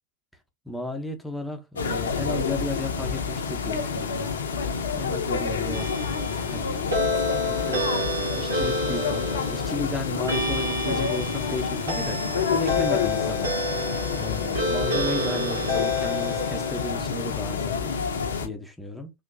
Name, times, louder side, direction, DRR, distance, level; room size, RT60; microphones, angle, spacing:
voice 1, 0.6-4.3 4.9-5.9 6.4-8.1 8.3-12.2 12.5-13.5 14.1-18.0 18.4-19.1, left 2 dB, 5° left, 0.8 m, -34 dB
sound 1, 1.8-18.5, left 5 dB, 65° left, 0.7 m, -28 dB
sound 2, 5.7-16.9, left 1 dB, 75° right, 1.4 m, -29 dB
3.7 x 2.9 x 2.6 m
figure-of-eight pair, 90°, 0 cm